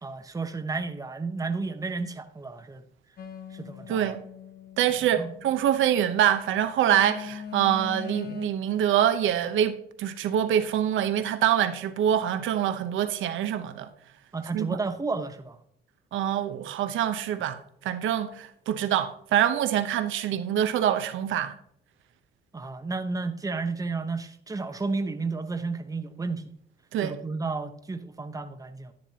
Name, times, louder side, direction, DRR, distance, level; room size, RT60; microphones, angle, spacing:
voice 1, 0.0-2.8 3.5-4.2 5.2-5.3 14.3-15.6 22.5-26.4 27.0-28.9, right 3 dB, 15° right, 0.9 m, -32 dB
sound 1, 3.2-6.1 6.8-8.5, left 7 dB, 55° left, 0.9 m, -41 dB
voice 2, 3.9-4.2 4.8-13.9 14.5-14.7 16.1-21.5 26.9-27.1, right 10 dB, 80° right, 0.9 m, -25 dB
10.5 x 10.0 x 2.8 m
cardioid pair, 90°, 20 cm